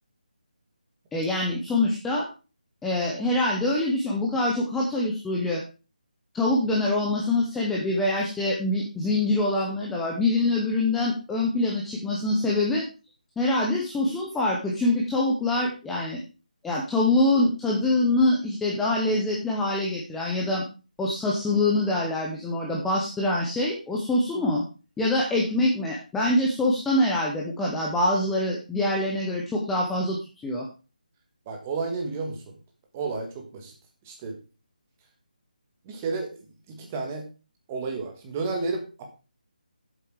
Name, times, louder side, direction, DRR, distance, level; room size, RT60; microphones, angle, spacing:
voice 1, 1.1-2.3 2.8-5.6 6.3-12.8 13.4-16.2 16.6-20.7 21.0-24.6 25.0-30.7, left 2 dB, 5° left, -3 dB, 0.7 m, -25 dB
voice 2, 31.5-32.4 32.9-33.7 34.0-34.4 35.8-36.3 36.7-37.3 37.7-39.1, right 4 dB, 15° right, 3 dB, 1.4 m, -31 dB
8.3 x 7.5 x 4.7 m, 0.32 s
figure-of-eight pair, 175°, 5 cm